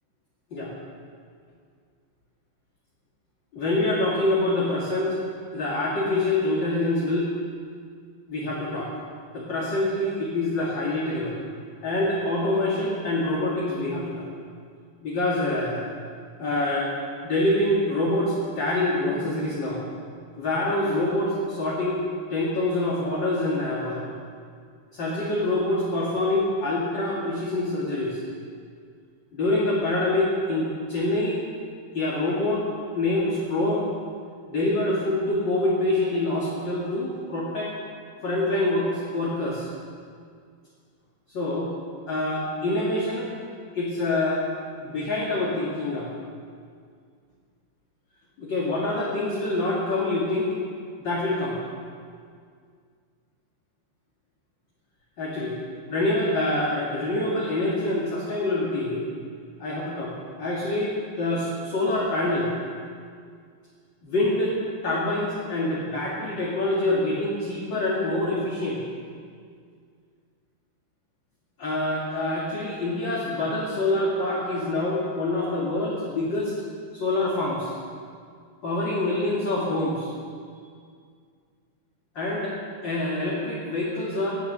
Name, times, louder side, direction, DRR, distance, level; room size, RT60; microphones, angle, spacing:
voice 1, 3.5-5.2 5.5-7.3 8.3-8.9 9.3-11.3 11.8-14.3 15.0-15.8 16.4-16.9 17.2-19.8 20.4-22.0 22.3-24.0 24.9-28.2 29.3-31.4 31.9-32.7 32.9-33.9 34.5-37.7 38.2-39.7 41.3-41.7 42.1-43.3 43.7-44.4 44.8-46.1 48.4-50.5 51.0-51.6 55.2-55.6 55.9-59.1 59.6-60.1 60.4-62.5 64.0-68.8 71.6-76.6 76.9-77.7 78.6-80.1 82.1-82.5 82.8-84.3, left 2 dB, 40° left, -5 dB, 2.7 m, -25 dB
18.0 x 11.5 x 6.8 m, 2.1 s
omnidirectional pair, 3.3 m